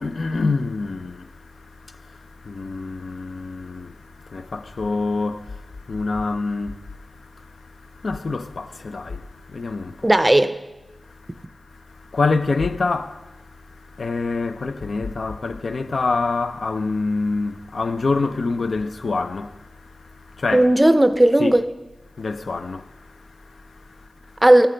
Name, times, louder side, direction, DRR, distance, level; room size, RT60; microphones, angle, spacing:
voice 1, 0.0-10.1 11.0-20.7 21.4-21.6 22.2-24.4, left 3 dB, 75° left, 0.4 m, -27 dB
voice 2, 10.0-10.5 20.5-21.6 24.4-24.7, right 1 dB, 20° right, 0.5 m, -15 dB
13.5 x 9.0 x 3.2 m
cardioid pair, 50°, 0 cm